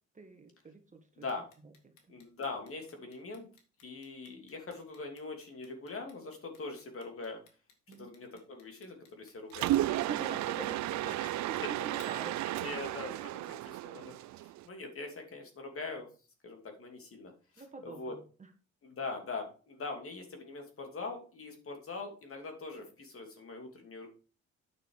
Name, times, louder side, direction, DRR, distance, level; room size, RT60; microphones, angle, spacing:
voice 1, 0.1-1.0 1.8-1.9 7.9-8.1 9.9-12.7 17.6-18.5, right 4 dB, 25° right, 5 dB, 1.6 m, -44 dB
Clock, 1.3-13.3, left 5 dB, 85° left, 2.1 m, -60 dB
voice 2, 2.1-3.5 3.8-7.4 7.9-9.9 11.2-11.3 11.6-11.7 12.4-14.1 14.4-16.1 16.4-18.1 18.8-24.1, left 3 dB, 45° left, 4 dB, 2.7 m, -42 dB
Mechanisms, 9.5-14.6, right 15 dB, 70° right, 0.4 m, -33 dB
9.3 x 6.2 x 4.7 m, 0.37 s
cardioid pair, 90°, 30 cm